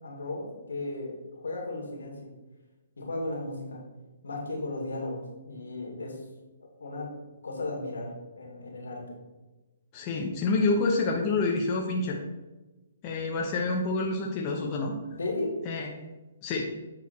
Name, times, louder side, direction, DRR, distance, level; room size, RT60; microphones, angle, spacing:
voice 1, 0.0-2.3 3.0-3.8 4.2-6.2 6.6-7.1 7.4-9.0 15.2-15.5, left 2 dB, 80° left, -1 dB, 2.5 m, -35 dB
voice 2, 9.9-12.2 13.0-14.9 15.7-15.9 16.4-16.7, left 3 dB, 30° left, 0 dB, 0.9 m, -27 dB
8.4 x 4.2 x 4.3 m, 1.1 s
hypercardioid pair, 140°, 0 cm